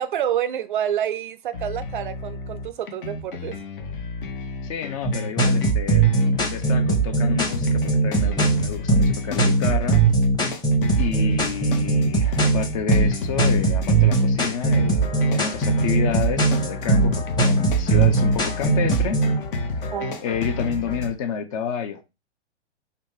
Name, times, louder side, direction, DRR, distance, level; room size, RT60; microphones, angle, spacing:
voice 1, 0.0-3.5 19.8-20.3, right 10 dB, 45° right, 0.5 m, -28 dB
sound 1, 1.5-21.1, left 3 dB, 50° left, 1.0 m, -31 dB
voice 2, 4.6-6.1 6.4-10.0 11.0-19.2 19.6-19.9 20.2-22.0, left 7 dB, 30° left, 0.6 m, -30 dB
sound 2, 5.0-19.4, right 3 dB, 10° left, 1.1 m, -20 dB
5.0 x 2.8 x 3.6 m
figure-of-eight pair, 115°, 35 cm